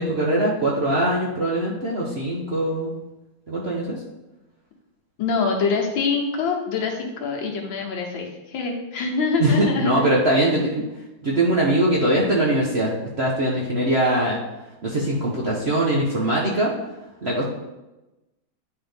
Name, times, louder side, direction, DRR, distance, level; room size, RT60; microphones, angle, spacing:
voice 1, 0.0-2.9 3.5-4.0 9.4-10.8 11.2-14.4 14.8-16.7 17.2-17.4, right 1 dB, 50° right, -5 dB, 0.8 m, -22 dB
voice 2, 5.2-10.1 10.8-10.9, left 4 dB, 75° left, 1 dB, 1.7 m, -25 dB
9.7 x 3.9 x 3.5 m, 1.0 s
omnidirectional pair, 2.2 m